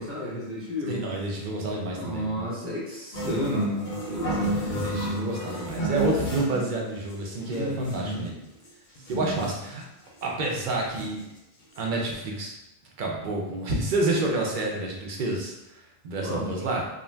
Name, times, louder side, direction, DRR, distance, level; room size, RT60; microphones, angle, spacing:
voice 1, 0.0-1.1 2.0-4.8 7.4-8.3 8.9-9.5 16.2-16.6, equal, 15° right, -7 dB, 0.8 m, -32 dB
voice 2, 0.9-2.5 4.4-8.4 9.1-9.8 10.2-11.3 11.8-12.5 13.0-15.5 16.0-16.9, right 2 dB, 55° right, -1 dB, 0.7 m, -29 dB
sound 1, 3.1-6.7 7.1-7.2 7.4-8.2 8.6-8.7 9.0-9.7 10.2-10.3 10.6-11.3 11.7-11.8 12.0-12.1, right 1 dB, 55° left, 0.6 m, -31 dB
2.5 x 2.2 x 3.2 m, 0.90 s
omnidirectional pair, 1.1 m